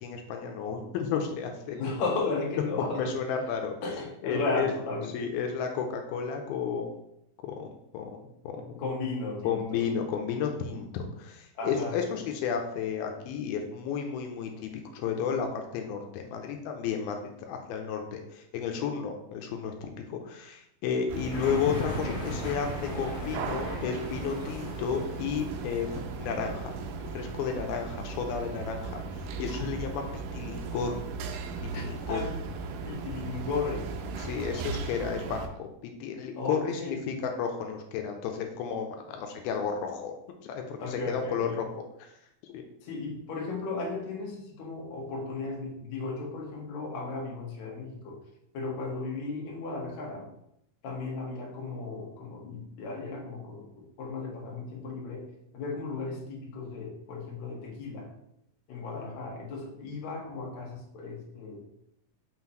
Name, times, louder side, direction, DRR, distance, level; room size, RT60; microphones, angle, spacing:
voice 1, 0.0-1.8 2.9-3.7 4.2-4.7 5.1-7.0 7.4-7.7 7.9-8.1 8.4-8.9 9.4-26.7 27.1-31.0 31.7-32.2 34.2-35.7 36.0-40.2 40.4-41.7 42.4-42.6 58.9-59.1, left 6 dB, 85° left, 4 dB, 2.5 m, -32 dB
voice 2, 1.7-3.2 3.8-5.3 8.8-9.8 11.6-12.0 31.7-32.4 32.9-33.9 36.4-37.0 40.8-41.6 42.8-48.2 48.5-50.3 50.8-55.3 55.5-58.1 58.7-61.6, left 3 dB, 60° left, -2 dB, 2.2 m, -35 dB
sound 1, 21.1-35.5, right 4 dB, 80° right, 2.3 m, -37 dB
sound 2, 21.3-26.1, left 1 dB, 40° left, 0.8 m, -38 dB
5.8 x 5.7 x 3.0 m, 0.78 s
omnidirectional pair, 4.3 m